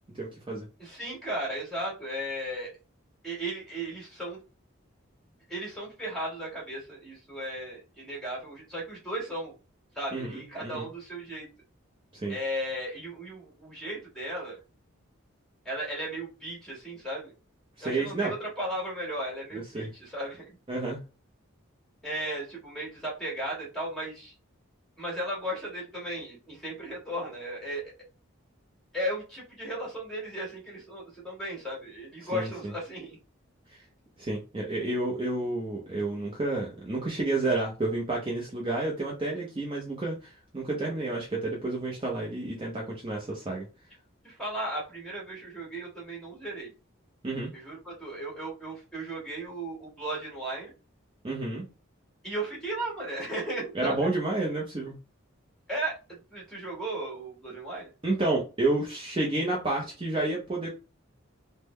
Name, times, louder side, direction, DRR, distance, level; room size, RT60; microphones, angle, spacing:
voice 1, 0.1-0.7 10.1-10.9 12.1-12.3 17.8-18.3 19.7-19.9 20.7-21.0 32.3-32.5 33.7-33.8 34.2-43.7 47.2-47.5 51.2-51.6 53.7-54.9 58.0-60.7, right 2 dB, 25° right, -3 dB, 0.7 m, -30 dB
voice 2, 0.8-2.7 3.2-4.4 5.5-9.5 9.9-11.5 12.3-14.6 15.6-17.3 17.8-20.6 22.0-24.3 25.0-27.8 28.9-33.2 44.2-46.7 47.5-50.7 52.2-54.0 55.7-56.0 56.3-57.9, right 1 dB, ahead, -3 dB, 1.7 m, -35 dB
3.7 x 2.1 x 3.1 m, 0.31 s
head